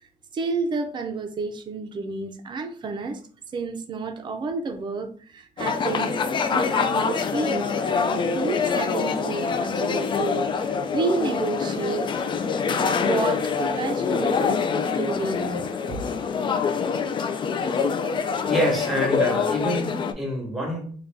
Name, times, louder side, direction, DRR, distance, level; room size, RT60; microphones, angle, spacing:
voice 1, 0.3-3.2 3.5-6.2 6.5-12.1 12.7-14.6 14.9-15.7, right 4 dB, 30° right, 0.5 m, -30 dB
sound 1, 5.6-20.1, left 5 dB, 35° left, 0.3 m, -25 dB
voice 2, 18.5-20.9, equal, ahead, 1.1 m, -26 dB
3.7 x 2.3 x 3.4 m
cardioid pair, 140°, 14 cm